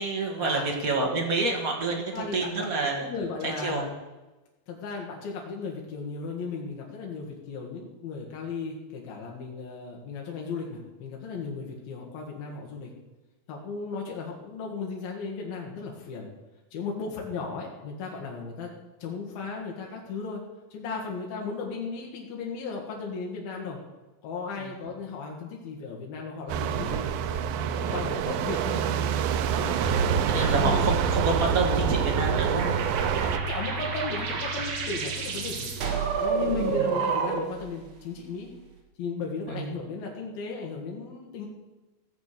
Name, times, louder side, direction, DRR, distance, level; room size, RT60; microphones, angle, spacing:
voice 1, 0.0-3.1 3.4-3.8 24.6-24.8 27.8-28.1 30.2-32.8 36.7-36.9 39.5-39.7, right 3 dB, 30° right, 0 dB, 1.7 m, -28 dB
voice 2, 2.1-2.7 3.0-3.9 4.7-12.9 13.5-16.3 16.7-18.7 19.0-20.4 20.7-23.8 24.2-27.0 27.8-28.9 29.5-29.8 30.4-30.9 31.6-32.0 32.5-32.8 33.2-35.7 36.2-38.5 39.0-41.5, left 4 dB, 80° left, -1 dB, 3.4 m, -35 dB
sound 1, 26.5-33.4, right 9 dB, 85° right, 2.4 m, -27 dB
sound 2, 29.8-37.6, right 4 dB, 60° right, 2.8 m, -28 dB
15.5 x 7.1 x 6.7 m, 1.1 s
omnidirectional pair, 4.2 m